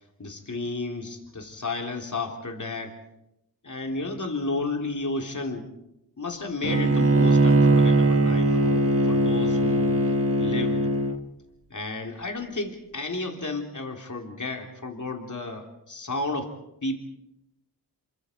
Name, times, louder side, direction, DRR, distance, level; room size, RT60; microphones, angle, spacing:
voice 1, 0.2-3.0 3.6-5.7 6.2-10.0 10.4-10.9 11.7-16.5 16.8-17.0, left 3 dB, 50° left, 3 dB, 3.6 m, -32 dB
Bowed string instrument, 6.6-11.2, right 2 dB, 35° right, 1.7 m, -20 dB
28.5 x 24.5 x 4.6 m, 0.84 s
wide cardioid pair, 60°, 40 cm